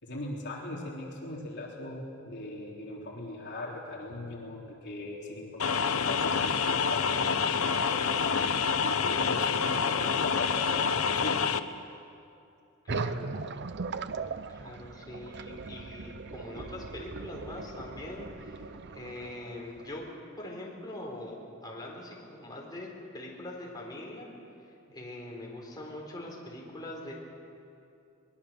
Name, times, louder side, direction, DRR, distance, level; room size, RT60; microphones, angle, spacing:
voice 1, 0.0-11.5, left 2 dB, 55° left, -3 dB, 3.4 m, -40 dB
sound 1, 5.6-11.6, left 6 dB, 80° left, 0.9 m, -27 dB
voice 2, 12.8-13.3 14.5-20.0 20.4-24.3 24.9-27.1, left 1 dB, 20° left, -2 dB, 4.2 m, -42 dB
sound 2, 12.9-20.1, right 4 dB, 55° right, 0.7 m, -39 dB
22.5 x 21.5 x 6.9 m, 2.6 s
head